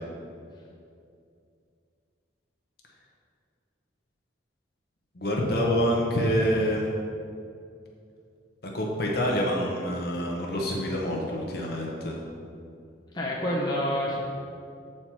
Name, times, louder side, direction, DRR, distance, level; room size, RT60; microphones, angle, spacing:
voice 1, 5.1-6.9 8.6-12.2, equal, 50° left, -1 dB, 0.9 m, -26 dB
voice 2, 13.1-14.2, left 1 dB, 20° left, -5 dB, 0.9 m, -27 dB
7.5 x 4.3 x 4.6 m, 2.4 s
head